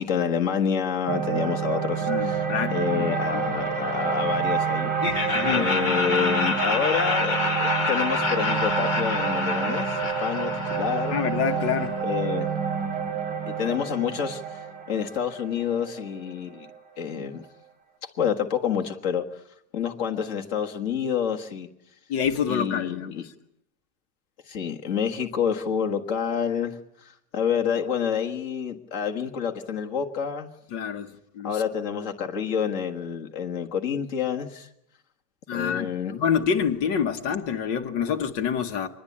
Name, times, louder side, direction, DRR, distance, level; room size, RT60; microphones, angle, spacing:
voice 1, 0.0-2.4 2.7-4.9 5.5-11.2 12.0-12.5 13.5-14.6 14.9-16.7 17.0-17.5 18.2-19.2 19.7-21.7 22.5-23.2 24.5-30.5 31.4-34.7 35.5-36.1, left 7 dB, 45° left, 2.0 m, -28 dB
sound 1, 1.1-17.3, right 6 dB, 90° right, 3.6 m, -29 dB
voice 2, 2.1-3.4 5.3-5.7 11.1-12.0 22.1-23.2 30.7-31.6 35.5-38.9, left 7 dB, 80° left, 1.9 m, -27 dB
Laughter, 5.0-11.9, left 3 dB, 25° left, 1.6 m, -28 dB
25.0 x 20.5 x 8.5 m
omnidirectional pair, 1.9 m